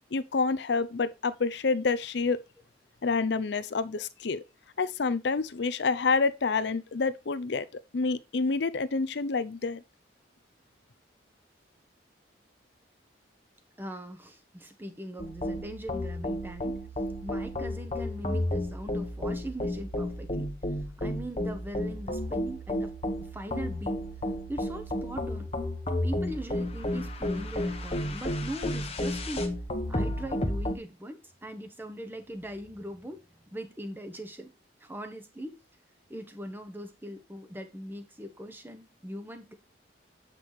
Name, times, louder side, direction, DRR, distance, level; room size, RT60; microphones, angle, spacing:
voice 1, 0.1-2.4 3.0-4.4 4.8-7.7 7.9-9.8, left 4 dB, 65° left, 0.6 m, -28 dB
voice 2, 13.8-16.9 17.2-20.5 21.0-24.0 24.5-25.5 26.0-29.5 29.9-33.2 33.5-34.5 34.8-35.6 36.1-39.5, right 1 dB, 10° right, 0.9 m, -40 dB
sound 1, 15.2-30.7, left 1 dB, 30° left, 1.0 m, -32 dB
8.2 x 5.9 x 3.2 m
head